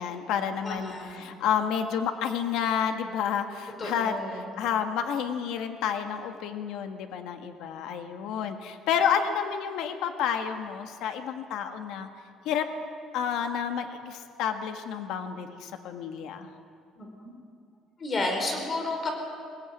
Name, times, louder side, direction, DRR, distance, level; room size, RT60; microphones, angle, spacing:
voice 1, 0.0-12.1 12.4-12.7 13.1-16.5, left 8 dB, 70° left, 6 dB, 1.6 m, -30 dB
voice 2, 0.6-1.2 3.8-4.5 17.0-17.1 18.0-19.1, left 2 dB, 25° left, 3 dB, 4.0 m, -31 dB
21.5 x 18.5 x 9.1 m, 2.3 s
cardioid pair, 165°, 0 cm